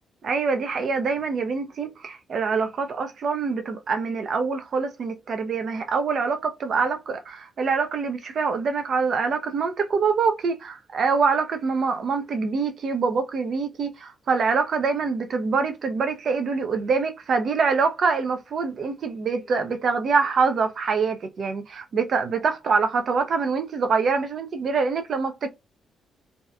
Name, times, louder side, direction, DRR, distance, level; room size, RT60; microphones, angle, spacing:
voice 1, 0.2-25.5, right 5 dB, 60° right, 0.5 m, -25 dB
2.7 x 2.3 x 2.4 m
hypercardioid pair, 45°, 0 cm